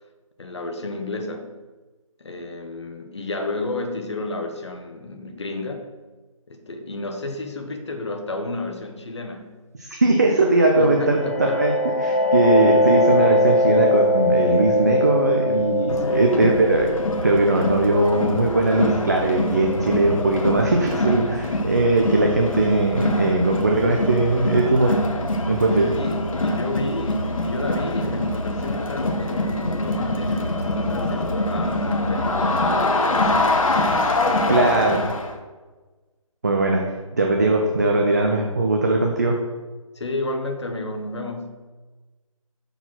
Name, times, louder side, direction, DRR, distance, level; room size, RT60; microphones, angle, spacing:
voice 1, 0.4-1.5 2.2-5.9 6.5-9.6 10.8-11.6 15.9-16.3 25.7-34.3 34.6-35.1 39.9-41.6, left 2 dB, 50° left, 4 dB, 1.0 m, -32 dB
voice 2, 10.0-16.9 17.2-24.9 25.5-25.9 34.5-35.0 36.4-36.8 37.1-39.4, right 2 dB, 30° right, 1 dB, 0.6 m, -20 dB
sound 1, 10.9-20.4, left 1 dB, 25° left, 0.4 m, -22 dB
Crowd, 15.9-35.3, left 1 dB, 70° left, 1.1 m, -24 dB
6.4 x 4.6 x 5.9 m, 1.3 s
figure-of-eight pair, 175°, 18 cm